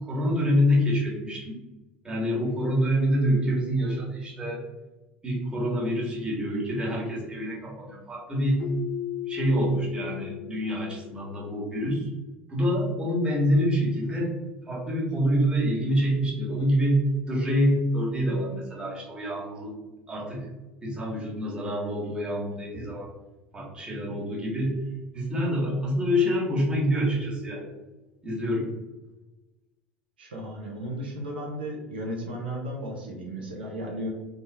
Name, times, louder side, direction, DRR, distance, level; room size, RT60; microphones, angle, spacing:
voice 1, 0.1-1.6 2.0-4.6 5.2-8.6 9.3-12.1 12.5-14.3 14.7-19.8 20.1-20.5 20.8-23.1 23.5-24.7 25.1-27.7 28.2-28.7, equal, 15° right, -5 dB, 1.1 m, -26 dB
Keyboard (musical), 8.6-11.4, left 12 dB, 55° left, 0.8 m, -36 dB
voice 2, 30.2-34.1, equal, 80° right, -2 dB, 0.5 m, -34 dB
2.8 x 2.0 x 2.6 m, 1.1 s
figure-of-eight pair, 70°, 5 cm